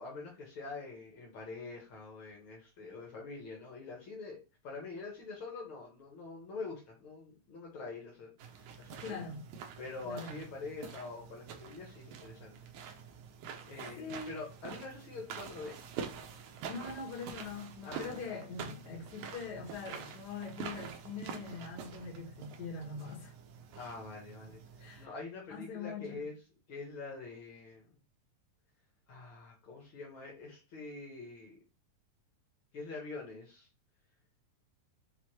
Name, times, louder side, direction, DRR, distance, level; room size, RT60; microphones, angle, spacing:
voice 1, 0.0-9.2 9.8-12.6 12.9-13.0 13.7-15.8 17.8-18.4 23.7-24.6 25.0-26.3 26.7-27.9 29.1-31.6 32.7-33.7, left 3 dB, 85° left, 1.1 m, -45 dB
sound 1, 8.4-25.1, right 6 dB, 75° right, 1.8 m, -47 dB
voice 2, 9.0-9.4 10.0-10.5 14.0-14.4 16.7-23.3 24.8-25.1 25.5-26.2, left 4 dB, 55° left, 1.1 m, -43 dB
6.0 x 2.6 x 3.0 m
omnidirectional pair, 4.0 m